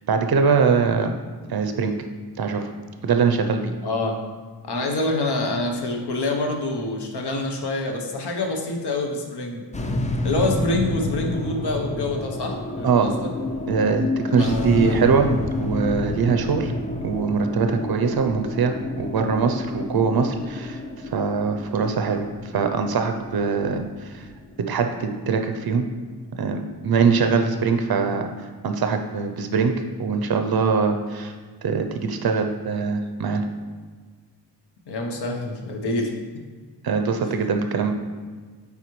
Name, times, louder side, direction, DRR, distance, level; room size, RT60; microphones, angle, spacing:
voice 1, 0.1-1.1 1.5-1.9 2.4-2.6 3.0-3.7 12.8-13.1 13.7-15.3 15.6-16.7 17.0-20.8 21.1-24.2 24.7-25.9 26.4-28.3 28.6-29.7 30.0-31.3 31.6-33.4 36.8-37.9, right 5 dB, 65° right, 6 dB, 0.6 m, -22 dB
voice 2, 3.8-4.2 4.7-9.6 10.2-13.3 14.3-15.0 34.9-36.1, left 2 dB, 75° left, 2 dB, 0.9 m, -26 dB
sound 1, 9.7-26.1, left 2 dB, 20° left, 0.3 m, -29 dB
9.1 x 3.6 x 3.1 m, 1.5 s
wide cardioid pair, 170°, 40 cm